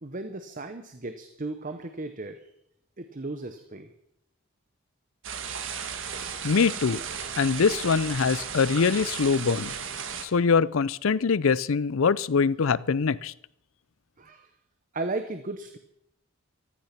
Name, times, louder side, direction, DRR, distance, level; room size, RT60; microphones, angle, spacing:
voice 1, 0.0-2.5 3.0-3.9 14.2-14.5 14.9-15.8, right 2 dB, 40° right, 0.9 m, -35 dB
sound 1, 5.2-10.3, right 7 dB, 60° right, 1.6 m, -35 dB
voice 2, 6.4-7.0 7.4-9.7 10.2-13.3, left 5 dB, 65° left, 0.5 m, -23 dB
14.5 x 13.5 x 5.8 m
head